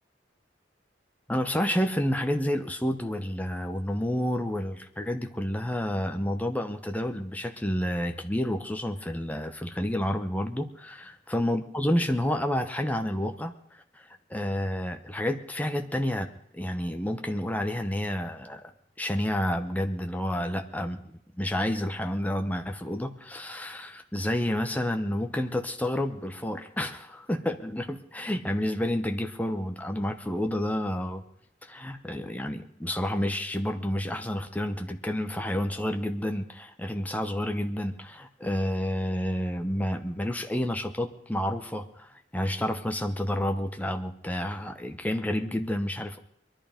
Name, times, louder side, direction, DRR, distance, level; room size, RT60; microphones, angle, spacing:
voice 1, 1.3-13.5 13.9-16.3 16.5-18.6 19.0-31.2 31.6-46.2, left 1 dB, 10° left, 5 dB, 1.0 m, -30 dB
22.5 x 11.5 x 5.2 m, 0.72 s
head